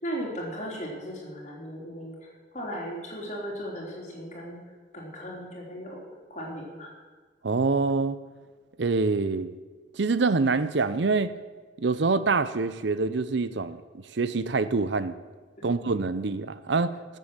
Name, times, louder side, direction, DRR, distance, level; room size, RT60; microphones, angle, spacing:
voice 1, 0.0-4.6 4.9-6.0 6.3-6.9 15.6-15.7, equal, 40° left, -2 dB, 3.6 m, -37 dB
voice 2, 7.4-8.2 8.8-9.6 10.0-11.3 11.8-15.2 15.6-17.2, right 4 dB, 75° right, 14 dB, 0.7 m, -26 dB
14.0 x 7.7 x 7.5 m, 1.4 s
head